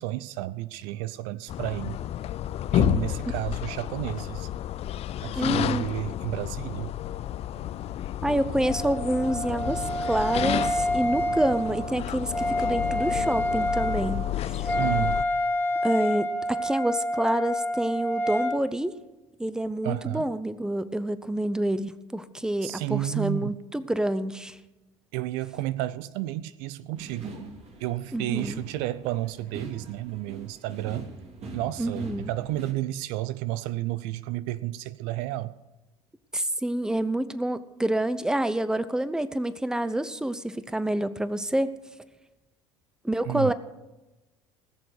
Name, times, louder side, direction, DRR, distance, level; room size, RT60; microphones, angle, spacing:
voice 1, 0.0-2.0 2.7-4.5 5.2-6.9 14.8-15.2 19.8-20.3 22.6-23.6 25.1-27.4 27.8-31.2 31.5-35.5 43.3-43.5, right 16 dB, 65° right, 16 dB, 0.5 m, -31 dB
sound 1, 1.5-15.2, left 12 dB, 45° left, 0.5 m, -31 dB
voice 2, 5.4-5.9 8.2-14.7 15.8-18.9 19.4-24.6 28.1-28.6 31.8-32.3 36.3-41.7 43.0-43.5, right 1 dB, 5° right, 14 dB, 0.8 m, -28 dB
Wind instrument woodwind instrument, 8.6-18.6, equal, 10° left, 2.1 m, -28 dB
sound 2, 26.9-32.7, right 3 dB, 45° right, 2.6 m, -42 dB
19.0 x 6.9 x 6.5 m, 1.0 s
hypercardioid pair, 70°, 15 cm